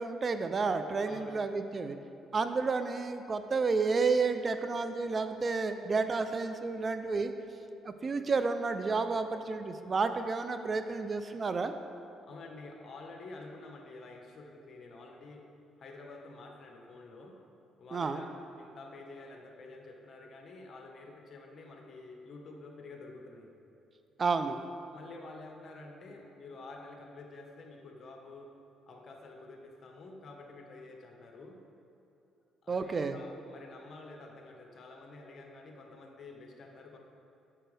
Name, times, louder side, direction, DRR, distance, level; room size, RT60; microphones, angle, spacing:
voice 1, 0.0-2.0 2.3-7.3 7.8-11.7 17.9-18.2 24.2-24.6 32.7-33.2, right 4 dB, 40° right, 9 dB, 0.5 m, -31 dB
voice 2, 1.0-1.4 12.2-15.4 15.8-17.3 17.8-18.3 18.6-23.5 24.9-28.5 28.9-31.6 32.6-37.0, left 3 dB, 55° left, 1 dB, 1.3 m, -49 dB
9.2 x 7.2 x 3.4 m, 2.9 s
supercardioid pair, 70°, 0 cm